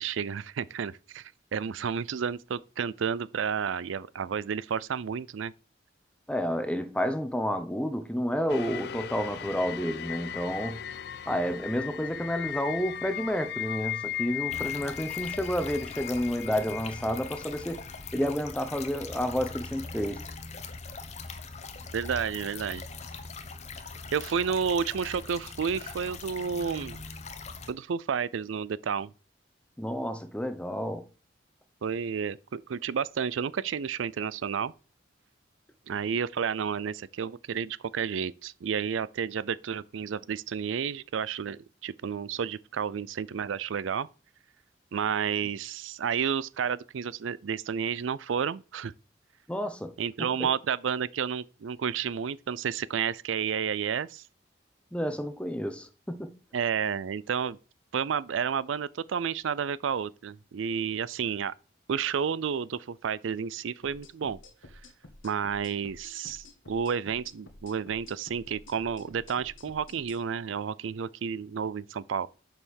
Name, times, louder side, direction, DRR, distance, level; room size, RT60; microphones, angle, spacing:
voice 1, 0.0-5.5 21.9-22.8 24.1-27.0 27.7-29.1 31.8-34.7 35.9-44.1 44.9-48.9 50.0-54.2 56.5-57.6 57.9-61.5 61.9-64.4 65.2-72.3, right 7 dB, 85° right, 0.4 m, -31 dB
voice 2, 6.3-10.8 11.3-17.8 18.1-20.2 29.8-31.1 49.5-50.5 54.9-56.4, equal, 5° left, 0.8 m, -30 dB
sound 1, 8.5-19.6 20.1-20.2, left 10 dB, 55° left, 0.4 m, -38 dB
sound 2, 14.5-27.7, left 4 dB, 35° left, 0.9 m, -41 dB
sound 3, 63.8-70.2, left 2 dB, 90° left, 1.5 m, -51 dB
7.0 x 5.6 x 6.4 m
head